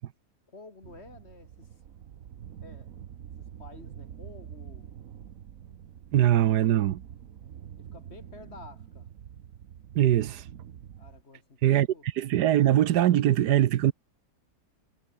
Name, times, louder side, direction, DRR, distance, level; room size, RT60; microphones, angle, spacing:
voice 1, 0.5-1.7 2.6-2.9 3.4-4.9 7.8-9.1 11.0-12.1, left 3 dB, 40° left, 2.7 m, -50 dB
sound 1, 0.8-11.2, right 9 dB, 55° right, 1.3 m, -46 dB
voice 2, 6.1-7.0 9.9-10.4 11.6-13.9, right 12 dB, 75° right, 1.3 m, -22 dB
omnidirectional pair, 1.8 m